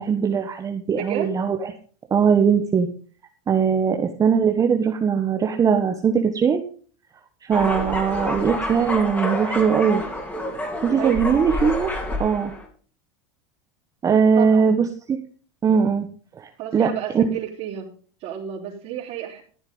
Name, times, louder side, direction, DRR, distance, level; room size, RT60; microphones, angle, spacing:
voice 1, 0.0-1.6 2.1-2.9 3.5-6.6 7.4-10.0 10.8-11.9 12.2-12.5 14.0-15.2 15.6-16.1 16.4-16.9 17.1-17.2, right 6 dB, 25° right, 4 dB, 1.3 m, -20 dB
voice 2, 0.9-1.3 11.0-11.2 14.4-14.8 16.6-17.9 18.2-19.4, right 11 dB, 50° right, -4 dB, 4.1 m, -31 dB
sound 1, 7.5-12.6, left 1 dB, 10° left, 3.6 m, -28 dB
14.0 x 8.0 x 5.4 m, 0.42 s
supercardioid pair, 125°, 15 cm